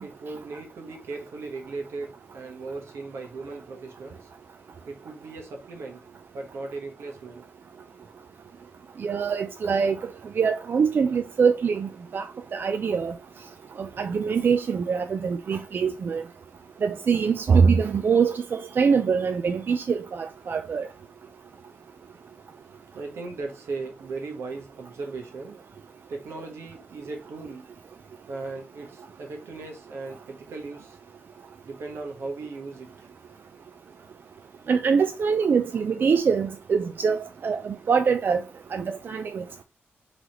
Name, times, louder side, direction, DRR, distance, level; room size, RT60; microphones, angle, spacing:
voice 1, 0.0-4.3 4.9-6.0 6.3-7.4 22.9-25.6 26.1-27.7 28.3-31.0 31.6-33.1, right 3 dB, 85° right, 1.2 m, -37 dB
voice 2, 9.0-10.0 10.4-12.3 12.5-13.1 13.8-16.2 16.8-20.9 34.7-38.4 38.7-39.6, right 6 dB, 55° right, 0.4 m, -24 dB
3.9 x 3.2 x 3.0 m
cardioid pair, 90°, 4 cm